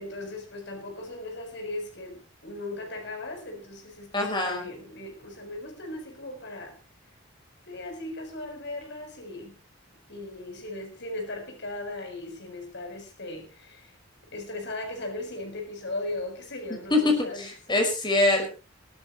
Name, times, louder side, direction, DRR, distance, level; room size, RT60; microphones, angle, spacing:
voice 1, 0.0-6.8 7.7-9.6 10.1-13.9 14.3-17.5, left 2 dB, 60° left, 7.2 m, -38 dB
voice 2, 4.1-4.7 16.9-18.5, left 2 dB, 25° left, 5.6 m, -24 dB
17.5 x 13.0 x 4.5 m
head